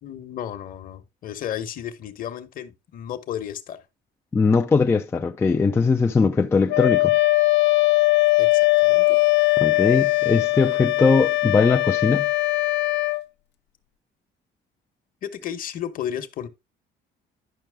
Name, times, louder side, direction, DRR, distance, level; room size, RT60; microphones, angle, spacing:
voice 1, 0.0-3.8 8.4-9.2 15.2-16.5, left 10 dB, 45° left, 1.1 m, -33 dB
voice 2, 4.3-7.2 9.6-12.3, left 4 dB, 15° left, 0.4 m, -20 dB
Wind instrument woodwind instrument, 6.7-13.2, left 20 dB, 65° left, 0.6 m, -20 dB
10.5 x 5.9 x 3.4 m
cardioid pair, 170°, 19 cm